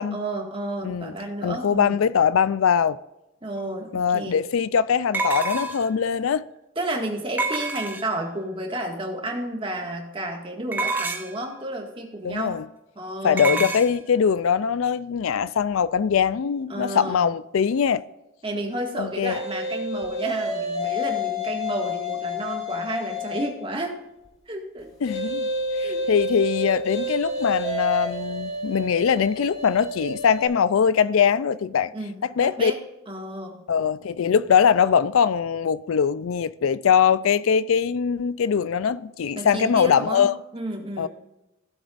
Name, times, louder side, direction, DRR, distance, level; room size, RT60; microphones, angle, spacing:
voice 1, 0.0-2.0 3.4-4.4 6.8-12.6 13.0-13.7 16.7-17.3 18.4-24.0 24.5-24.9 25.8-26.1 31.9-32.2 32.6-32.8 33.1-33.7 39.4-41.1, right 1 dB, 25° right, 1.9 m, -31 dB
voice 2, 0.8-1.1 1.4-3.0 3.9-6.4 12.2-12.6 13.2-18.0 19.0-19.4 25.0-25.5 25.8-31.9 32.2-32.7 33.7-40.3 41.0-41.1, left 7 dB, 85° left, 0.4 m, -22 dB
sound 1, 3.6-3.7 5.1-6.0 7.4-8.3 10.7-11.4 13.4-13.9, right 3 dB, 10° right, 0.9 m, -27 dB
sound 2, 19.2-23.6 25.0-30.5, left 2 dB, 30° left, 2.3 m, -29 dB
16.5 x 7.9 x 2.5 m
head